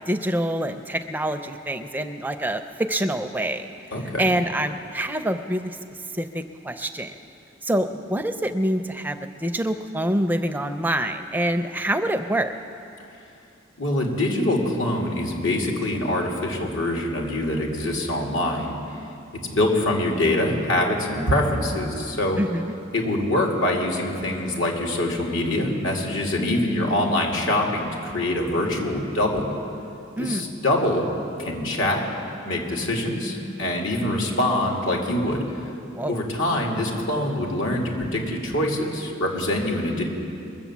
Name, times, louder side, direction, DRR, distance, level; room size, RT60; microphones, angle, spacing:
voice 1, 0.1-3.7 4.2-5.7 6.1-7.1 7.6-12.5 22.4-22.7 30.2-30.4 35.9-36.2, right 1 dB, 10° right, 8 dB, 0.4 m, -26 dB
voice 2, 3.9-4.3 13.8-18.8 19.5-22.4 22.9-29.5 30.2-31.1 31.4-32.0 32.4-35.4 36.1-40.0, left 1 dB, 85° left, 0 dB, 2.5 m, -24 dB
22.0 x 7.7 x 7.2 m, 2.7 s
head